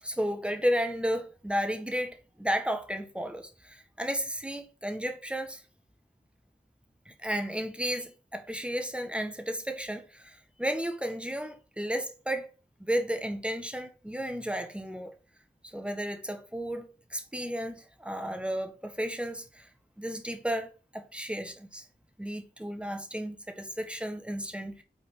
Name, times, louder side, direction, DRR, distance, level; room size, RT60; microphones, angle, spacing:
voice 1, 0.0-5.6 7.0-12.5 12.8-15.1 15.7-19.7 20.0-21.8 22.2-24.8, equal, 5° right, 1.7 m, -33 dB
5.9 x 4.2 x 5.7 m
cardioid pair, 40°, 18 cm